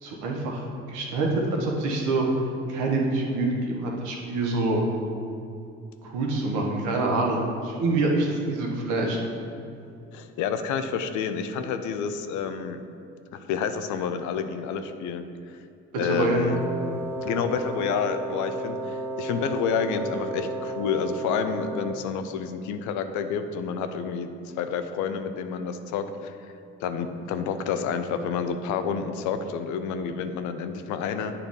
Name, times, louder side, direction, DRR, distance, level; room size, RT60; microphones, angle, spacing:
voice 1, 0.0-0.6 0.9-1.3 1.6-2.3 2.7-4.9 6.0-9.2 16.0-16.4, right 2 dB, 70° right, 0 dB, 1.3 m, -26 dB
voice 2, 10.1-12.8 13.3-15.6 16.0-16.6 17.2-24.3 24.6-26.3 26.8-31.3, left 6 dB, 65° left, 9 dB, 0.6 m, -29 dB
Wind instrument woodwind instrument, 16.5-22.2, right 2 dB, 10° right, 0.5 m, -33 dB
8.3 x 3.3 x 5.4 m, 2.5 s
hypercardioid pair, 60°, 31 cm